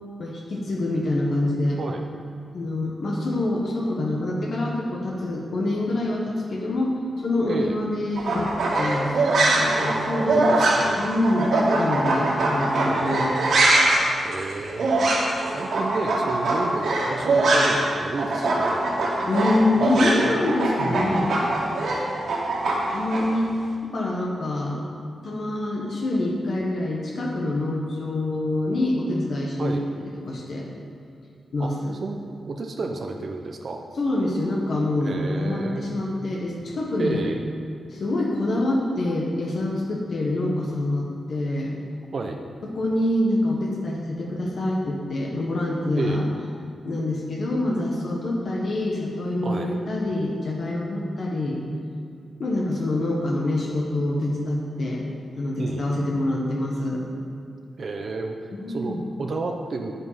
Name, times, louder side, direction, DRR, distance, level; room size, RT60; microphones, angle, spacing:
voice 1, 0.2-1.8 2.5-9.1 9.5-10.5 11.0-13.3 19.3-21.4 22.9-23.5 23.9-24.8 25.2-30.7 31.5-31.9 34.0-37.2 37.9-41.7 42.6-46.2 46.8-51.6 52.4-55.0 55.4-57.0 58.5-59.0, left 1 dB, 50° left, -2 dB, 1.4 m, -26 dB
voice 2, 7.4-7.8 9.8-10.0 10.3-11.1 12.8-13.2 14.2-14.9 15.5-18.8 19.7-20.5 20.8-21.5 29.6-29.8 31.6-31.7 32.0-32.2 32.4-33.8 35.0-36.0 37.0-37.4 42.1-42.4 45.9-46.3 49.4-49.7 55.6-55.9 57.8-59.9, right 3 dB, 45° right, 3 dB, 0.7 m, -31 dB
sound 1, 8.2-17.9 18.2-23.2, right 2 dB, 80° right, 2.8 m, -22 dB
10.0 x 9.4 x 5.7 m, 2.4 s
wide cardioid pair, 165°, 0 cm